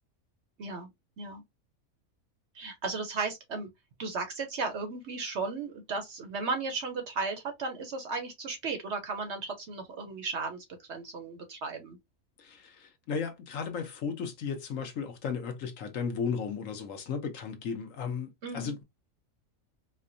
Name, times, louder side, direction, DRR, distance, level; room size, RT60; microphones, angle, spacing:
voice 1, 0.6-0.9 1.2-1.4 2.5-3.7 4.0-12.0 18.4-18.7, right 4 dB, 60° right, 0.8 m, -35 dB
voice 2, 12.4-18.8, left 6 dB, 65° left, 1.1 m, -35 dB
4.4 x 2.1 x 2.5 m
omnidirectional pair, 1.6 m